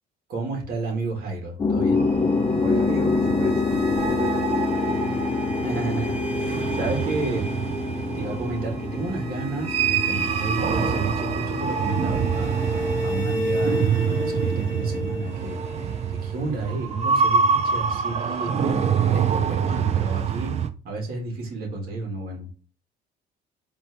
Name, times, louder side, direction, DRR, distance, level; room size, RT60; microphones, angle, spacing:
voice 1, 0.3-2.1 5.6-7.5 8.1-12.5 13.0-15.6 16.2-18.8 19.1-20.5 20.8-22.5, right 3 dB, 65° right, 1 dB, 1.7 m, -31 dB
sound 1, 1.6-15.1, left 4 dB, 25° left, 0.4 m, -27 dB
sound 2, 2.0-20.7, right 6 dB, 40° right, 0.4 m, -26 dB
sound 3, 2.1-17.0, equal, 5° right, 1.1 m, -33 dB
voice 2, 2.5-4.6, right 4 dB, 80° right, -2 dB, 1.0 m, -35 dB
4.3 x 2.7 x 3.3 m, 0.38 s
cardioid pair, 110°, 17 cm